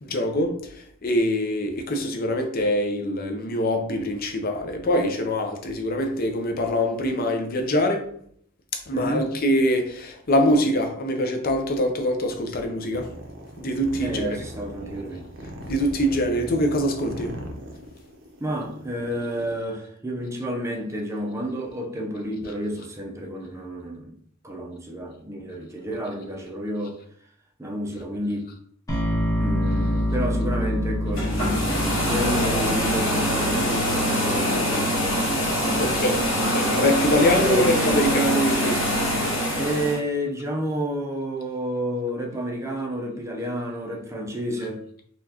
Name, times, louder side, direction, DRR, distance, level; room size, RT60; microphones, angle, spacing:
voice 1, 0.0-0.6 1.0-8.1 8.9-13.1 13.6-14.3 15.7-17.4 35.8-36.2 36.5-38.9, equal, 45° left, 0.5 m, -24 dB
voice 2, 8.9-9.3 14.0-15.2 18.4-24.1 24.4-27.0 27.6-28.5 29.4-35.2 35.6-36.1 37.4-38.1 39.5-44.8, equal, 15° right, 0.5 m, -30 dB
sound 1, 12.9-19.6, right 1 dB, 60° right, 0.7 m, -39 dB
sound 2, 28.9-34.9, equal, 15° left, 0.8 m, -27 dB
sound 3, 31.1-40.0, equal, 70° left, 1.4 m, -24 dB
4.2 x 2.4 x 2.8 m
head